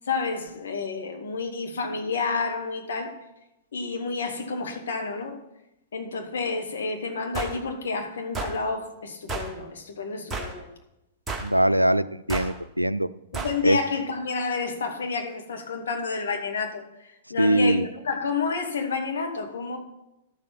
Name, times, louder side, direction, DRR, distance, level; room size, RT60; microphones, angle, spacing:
voice 1, 0.1-3.2 3.7-5.4 5.9-10.7 13.3-17.8 18.0-19.8, left 4 dB, 60° left, 4 dB, 1.9 m, -30 dB
sound 1, 7.3-7.6 8.3-8.6 9.3-9.5 10.3-10.6 11.3-11.5 12.3-12.5 13.3-13.6, right 3 dB, 10° right, 1.7 m, -31 dB
voice 2, 11.4-13.1 13.6-13.8 17.4-17.9, right 1 dB, 90° right, 16 dB, 0.4 m, -22 dB
12.5 x 7.3 x 5.9 m, 0.88 s
figure-of-eight pair, 105°, 0 cm